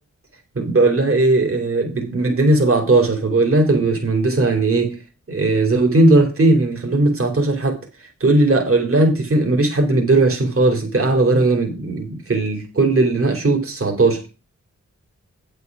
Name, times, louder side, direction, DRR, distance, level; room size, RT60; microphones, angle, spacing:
voice 1, 0.5-5.0 5.3-7.8 8.2-14.3, right 2 dB, 50° right, 2 dB, 3.2 m, -17 dB
8.7 x 6.9 x 6.1 m, 0.31 s
cardioid pair, 55°, 30 cm